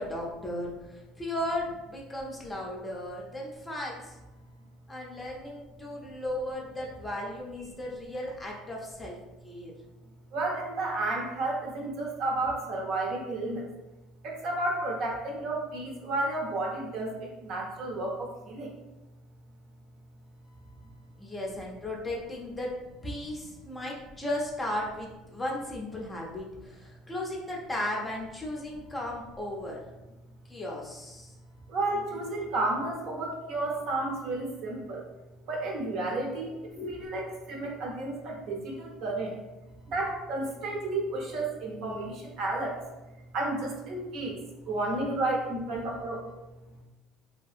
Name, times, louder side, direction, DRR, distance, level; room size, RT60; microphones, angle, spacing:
voice 1, 0.0-4.2 4.9-9.2 9.4-9.7 21.2-22.7 23.0-29.8 30.5-31.4 36.8-37.0, left 1 dB, 15° left, -2 dB, 0.5 m, -36 dB
voice 2, 10.3-13.7 14.2-18.7 31.7-35.1 35.5-39.4 39.8-42.8 43.3-46.3, right 2 dB, 60° right, -1 dB, 0.7 m, -32 dB
2.8 x 2.6 x 2.4 m, 1.1 s
cardioid pair, 125°, 0 cm